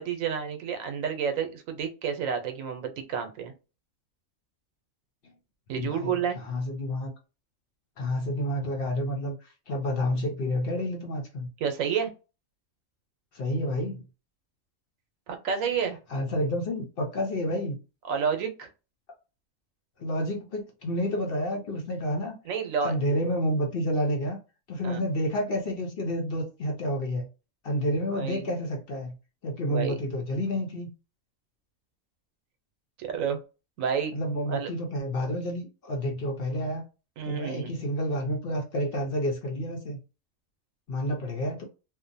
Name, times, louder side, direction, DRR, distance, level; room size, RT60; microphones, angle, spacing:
voice 1, 0.0-3.5 5.7-6.4 11.6-12.1 15.3-16.0 18.0-18.7 22.5-22.9 24.8-25.0 28.1-28.5 29.7-29.9 33.0-33.4 33.8-34.1 34.5-34.7 37.2-37.7, right 7 dB, 80° right, 1.0 m, -30 dB
voice 2, 5.8-7.1 8.0-11.5 13.3-14.0 16.1-17.8 20.0-22.4 22.8-24.4 24.7-27.3 27.6-29.1 29.4-30.9 34.1-36.8 37.2-40.0 40.9-41.7, equal, 55° left, 0.8 m, -29 dB
2.7 x 2.1 x 2.6 m
omnidirectional pair, 1.4 m